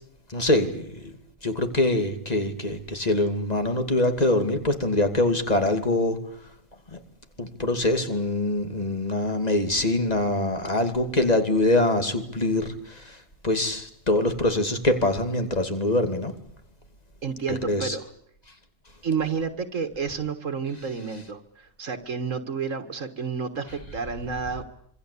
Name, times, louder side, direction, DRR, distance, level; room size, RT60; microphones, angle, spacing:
voice 1, 0.3-1.1 1.4-6.2 6.9-7.0 7.4-13.2 13.4-16.3 17.5-18.0, left 1 dB, 30° left, 7 dB, 2.8 m, -24 dB
voice 2, 17.2-18.1 19.0-24.6, right 5 dB, 75° right, 8 dB, 2.0 m, -30 dB
26.5 x 24.5 x 8.5 m, 0.70 s
omnidirectional pair, 1.3 m